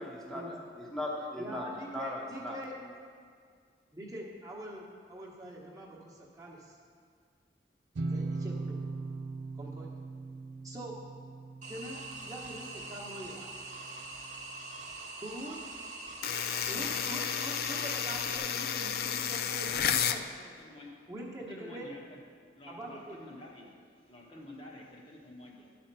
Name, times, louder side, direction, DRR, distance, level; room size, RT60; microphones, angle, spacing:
voice 1, 0.0-1.7 1.9-2.6, left 1 dB, ahead, -4 dB, 1.0 m, -38 dB
voice 2, 1.4-2.7 3.9-6.8 8.1-8.8 9.6-9.9 10.6-11.0 11.7-13.5 15.2-15.6 16.7-20.2 21.1-21.9 22.7-23.2, right 1 dB, 20° right, -3 dB, 1.1 m, -44 dB
sound 1, 8.0-13.6, right 3 dB, 80° right, 0.5 m, -39 dB
sound 2, 11.6-18.4, right 2 dB, 45° right, 0.9 m, -44 dB
sound 3, 16.2-20.2, left 8 dB, 55° left, 0.4 m, -32 dB
voice 3, 20.2-21.0 21.5-22.2 22.5-25.8, left 2 dB, 30° left, -2 dB, 1.0 m, -50 dB
10.5 x 4.3 x 6.7 m, 2.1 s
head